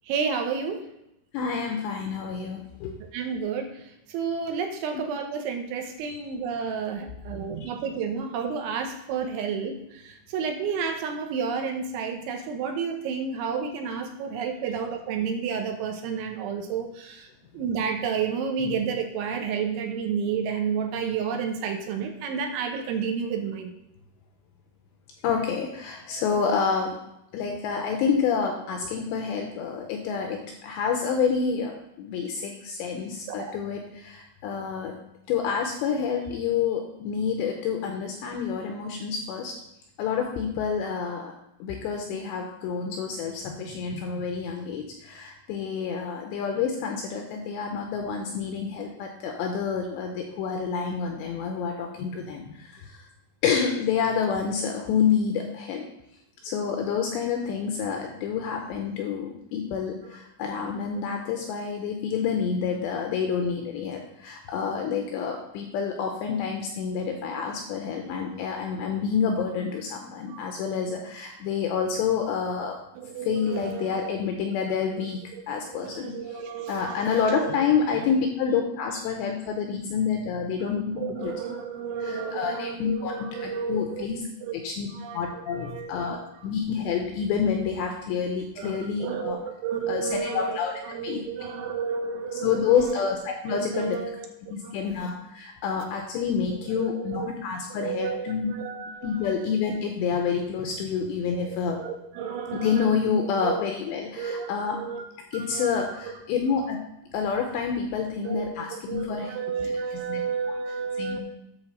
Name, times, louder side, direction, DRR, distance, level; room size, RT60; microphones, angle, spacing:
voice 1, 0.1-0.8 3.1-17.3 17.5-23.7 33.3-33.5 68.1-68.3 70.3-70.5 73.0-74.1 75.3-77.6 78.0-78.2 81.0-84.0 84.4-84.5 84.9-86.5 88.6-90.6 90.8-93.0 93.5-94.3 94.6-94.8 96.8-97.3 97.7-99.2 101.3-103.0 103.4-103.6 104.2-105.0 105.3-106.1 108.2-111.2, right 6 dB, 80° right, 4 dB, 3.0 m, -31 dB
voice 2, 1.3-2.9 6.0-6.2 7.6-7.7 25.2-27.0 27.3-31.7 32.0-34.9 35.3-39.5 40.0-41.3 41.6-53.0 53.4-55.8 56.4-72.8 73.2-75.2 75.5-76.1 76.7-81.4 82.0-83.1 83.4-84.2 84.5-84.9 85.1-86.2 86.4-89.4 89.9-90.7 91.0-91.2 92.4-94.0 94.5-98.5 99.0-101.8 102.6-104.8 105.3-106.8 107.1-109.3 109.6-109.7 110.1-110.2 111.0-111.2, left 6 dB, 80° left, 3 dB, 2.6 m, -28 dB
10.5 x 4.2 x 6.5 m, 0.82 s
omnidirectional pair, 5.8 m